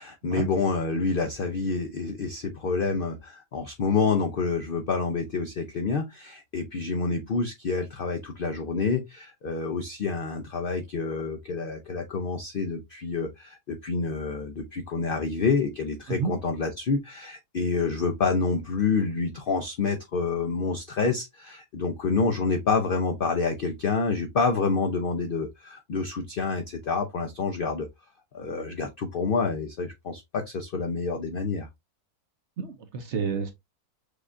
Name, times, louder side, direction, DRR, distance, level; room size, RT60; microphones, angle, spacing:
voice 1, 0.0-27.9 28.3-31.7, left 4 dB, 65° left, 0.5 m, -28 dB
voice 2, 32.6-33.5, right 6 dB, 60° right, 0.8 m, -29 dB
6.4 x 2.4 x 2.5 m
omnidirectional pair, 1.6 m